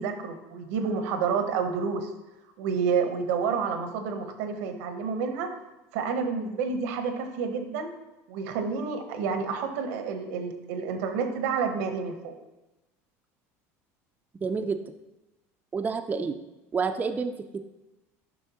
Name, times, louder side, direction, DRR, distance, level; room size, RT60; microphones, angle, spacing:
voice 1, 0.0-2.1 2.6-5.5 5.9-7.9 8.3-12.3, right 5 dB, 80° right, 7 dB, 0.8 m, -29 dB
voice 2, 14.4-14.8 15.7-16.3 16.7-17.6, right 5 dB, 20° right, 6 dB, 0.4 m, -29 dB
7.0 x 5.5 x 2.8 m, 1.0 s
supercardioid pair, 95°, 8 cm